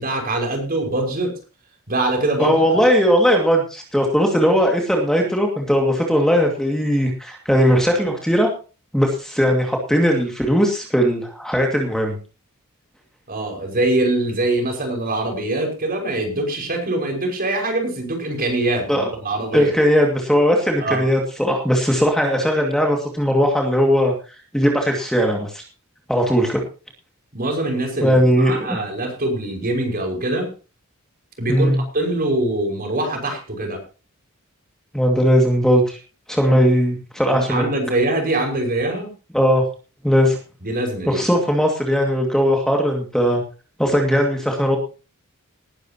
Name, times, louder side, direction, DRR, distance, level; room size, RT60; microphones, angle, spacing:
voice 1, 0.0-1.4 1.9-2.8 13.3-19.7 20.8-21.1 27.3-30.5 31.4-33.8 36.5-36.6 37.3-39.1 40.6-41.2, right 2 dB, 45° right, 3 dB, 5.9 m, -23 dB
voice 2, 2.4-8.5 8.9-12.2 18.9-19.1 19.5-24.1 24.5-25.6 26.1-26.6 28.0-28.8 31.5-31.8 34.9-36.0 36.3-37.7 39.3-39.7 40.0-40.4 41.1-43.4 43.8-44.8, equal, 5° left, 2 dB, 2.3 m, -18 dB
19.5 x 12.0 x 3.0 m, 0.34 s
head